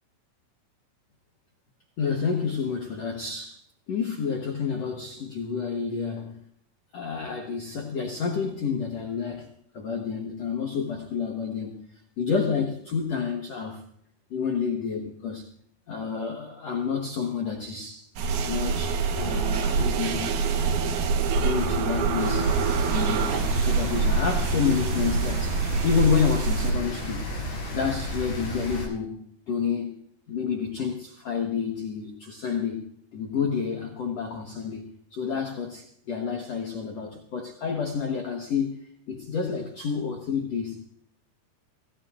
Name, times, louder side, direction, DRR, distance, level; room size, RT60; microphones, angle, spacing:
voice 1, 2.0-3.6 3.9-6.4 6.9-11.8 12.2-13.8 14.3-15.5 15.9-18.1 18.4-20.4 21.4-22.6 22.9-27.3 27.7-30.0 30.3-40.8, left 6 dB, 90° left, 1.4 m, -29 dB
sound 1, 18.2-26.7, right 5 dB, 70° right, 1.9 m, -25 dB
Rain, 22.2-28.8, equal, 50° left, 9.0 m, -33 dB
28.0 x 17.5 x 2.5 m
omnidirectional pair, 5.2 m